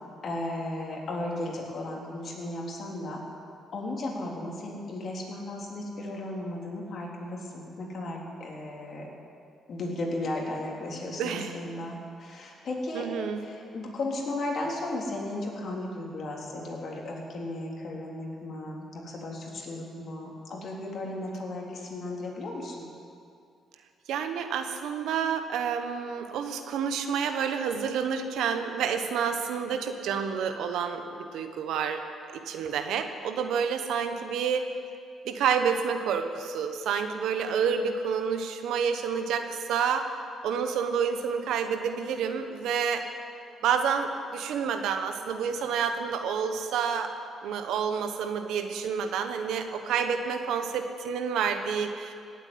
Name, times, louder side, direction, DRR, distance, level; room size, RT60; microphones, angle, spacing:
voice 1, 0.2-3.2 3.7-9.1 9.7-13.1 13.4-22.9, left 2 dB, 55° left, -2 dB, 3.8 m, -35 dB
voice 2, 11.2-11.6 12.9-13.4 24.1-32.0 32.3-34.7 35.2-40.1 40.4-43.0 43.6-47.1 47.4-52.1, right 7 dB, 85° right, 7 dB, 1.3 m, -29 dB
17.5 x 8.3 x 9.6 m, 2.4 s
cardioid pair, 90°, 0 cm